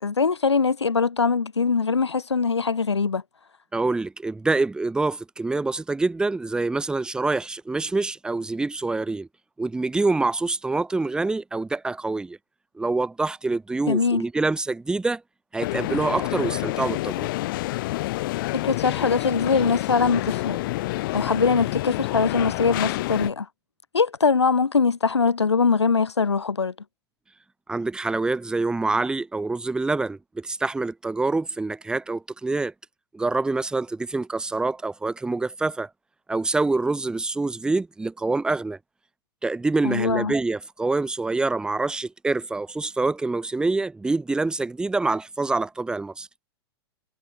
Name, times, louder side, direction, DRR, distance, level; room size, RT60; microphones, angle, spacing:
voice 1, 0.0-3.2 13.9-14.2 18.6-20.6 21.1-23.5 23.9-26.7 39.8-40.3, left 5 dB, 90° left, 0.5 m, -22 dB
voice 2, 3.7-9.3 9.6-12.4 12.8-15.2 15.5-17.3 27.7-32.7 33.1-35.9 36.3-38.8 39.4-46.3, right 3 dB, 5° right, 0.5 m, -26 dB
sound 1, 15.6-23.3, left 18 dB, 50° left, 1.5 m, -28 dB
figure-of-eight pair, 100°, 14 cm